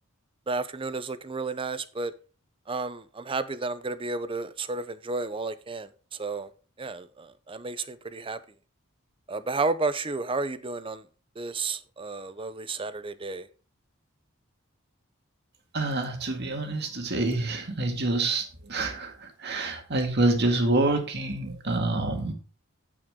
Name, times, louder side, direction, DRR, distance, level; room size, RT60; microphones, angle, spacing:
voice 1, 0.5-2.1 2.7-6.5 6.8-8.4 9.3-11.0 11.4-13.5, right 3 dB, 25° right, 0.6 m, -32 dB
voice 2, 15.7-22.3, right 2 dB, 55° right, 2.0 m, -27 dB
9.0 x 8.5 x 3.7 m
head